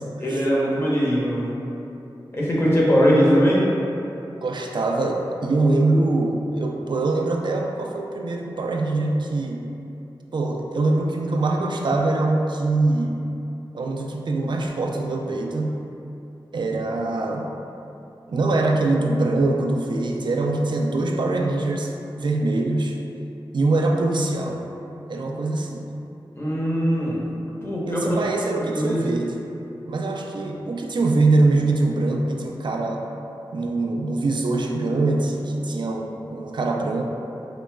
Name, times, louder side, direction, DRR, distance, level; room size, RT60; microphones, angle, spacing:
voice 1, 0.2-1.5 2.3-3.7 26.3-27.3 27.6-28.2 28.4-29.0, equal, 30° left, -6 dB, 0.9 m, -21 dB
voice 2, 4.4-9.7 10.3-13.2 13.7-15.8 16.5-17.5 18.3-21.9 22.2-23.0 23.5-24.7 25.1-25.9 27.9-29.5 29.9-33.1 33.5-37.0, right 2 dB, 65° right, 1 dB, 0.4 m, -23 dB
4.9 x 3.0 x 2.2 m, 2.8 s
wide cardioid pair, 85°, 9 cm